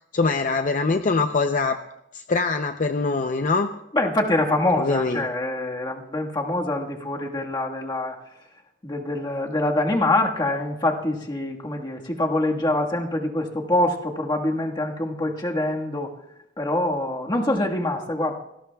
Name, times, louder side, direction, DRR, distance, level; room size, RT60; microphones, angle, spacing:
voice 1, 0.1-1.8 2.1-3.7 4.8-5.3, left 3 dB, 45° left, 7 dB, 0.6 m, -23 dB
voice 2, 3.9-8.2 8.8-16.1 16.6-18.3, left 1 dB, 25° left, 0 dB, 1.6 m, -25 dB
27.5 x 17.5 x 2.3 m, 0.82 s
head